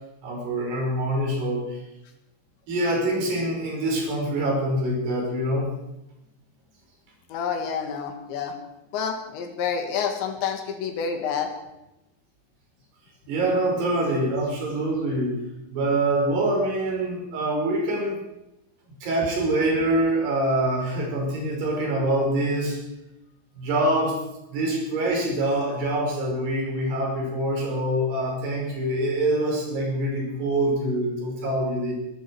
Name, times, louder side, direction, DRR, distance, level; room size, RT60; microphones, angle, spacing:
voice 1, 0.2-1.6 2.7-5.7 13.3-15.4 15.7-18.2 19.0-22.8 23.6-24.2 24.5-31.9, right 1 dB, 60° right, -2 dB, 7.5 m, -25 dB
voice 2, 7.3-8.6 8.9-11.5, left 6 dB, 75° left, 5 dB, 4.1 m, -28 dB
21.5 x 13.5 x 4.8 m, 0.90 s
omnidirectional pair, 5.4 m